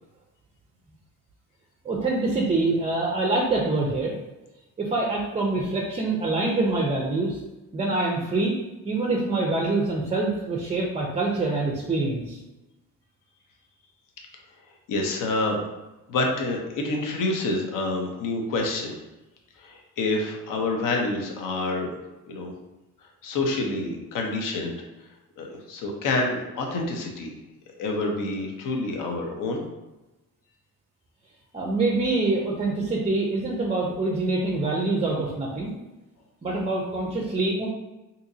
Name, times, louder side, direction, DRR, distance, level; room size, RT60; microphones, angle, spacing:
voice 1, 1.8-4.1 4.8-7.4 7.7-8.6 8.8-12.4 31.5-35.7 36.4-37.7, right 2 dB, 20° right, -2 dB, 0.4 m, -25 dB
voice 2, 14.9-15.6 16.1-19.0 19.6-21.9 22.3-22.5 23.2-24.7 25.4-27.3 27.8-29.6, left 2 dB, 65° left, 1 dB, 0.8 m, -27 dB
3.8 x 2.8 x 2.6 m, 1.0 s
cardioid pair, 135°, 35 cm